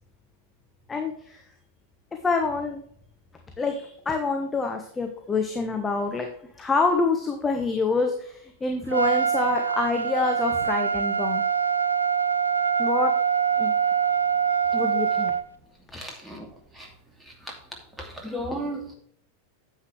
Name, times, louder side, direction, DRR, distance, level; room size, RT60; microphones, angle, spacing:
voice 1, 0.9-1.4 2.2-2.8 3.6-6.3 6.6-11.4 12.8-13.1 13.6-13.7 14.7-15.4, left 4 dB, 15° left, 3 dB, 1.2 m, -26 dB
Trumpet, 8.9-15.4, right 7 dB, 75° right, 0.5 m, -24 dB
voice 2, 15.9-16.9 17.2-17.6 17.9-19.0, equal, 10° right, 1 dB, 2.6 m, -35 dB
9.7 x 8.1 x 3.3 m, 0.62 s
figure-of-eight pair, 90°, 0 cm